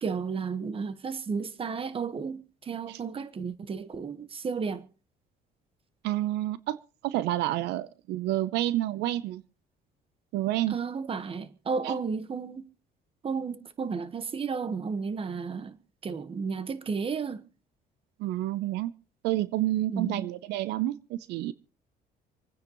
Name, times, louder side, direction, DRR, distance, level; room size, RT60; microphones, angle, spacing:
voice 1, 0.0-4.8 10.7-12.6 13.2-15.7 16.0-17.4 19.9-20.3, right 5 dB, 35° right, 1.3 m, -33 dB
voice 2, 6.0-6.8 7.0-9.4 10.3-10.8 11.8-11.9 18.2-18.9 19.2-21.5, right 14 dB, 85° right, 0.7 m, -29 dB
27.0 x 9.7 x 3.1 m
cardioid pair, 110°, 17 cm